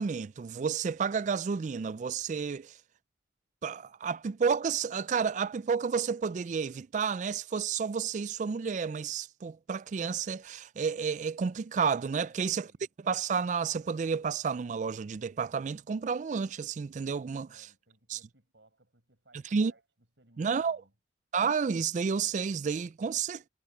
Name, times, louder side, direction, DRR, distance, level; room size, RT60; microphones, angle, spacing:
voice 1, 0.0-2.7 3.6-12.7 13.0-17.7 18.1-18.2 19.5-19.7 20.4-20.8 21.3-23.4, right 6 dB, 45° right, 0.3 m, -31 dB
voice 2, 12.2-12.9 17.3-19.8 20.2-20.9, right 2 dB, 80° right, 6.9 m, -64 dB
head